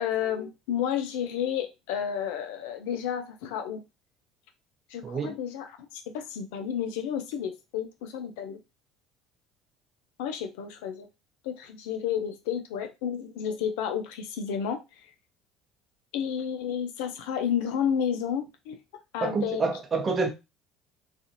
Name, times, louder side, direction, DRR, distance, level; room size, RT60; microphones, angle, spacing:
voice 1, 0.0-3.8 4.9-8.6 10.2-11.1 11.4-15.1 16.1-18.8 19.1-19.6, left 8 dB, 70° left, 0.4 m, -31 dB
voice 2, 5.0-5.3 19.2-20.3, right 4 dB, 35° right, 0.8 m, -27 dB
2.4 x 2.4 x 2.8 m
figure-of-eight pair, 60°, 0 cm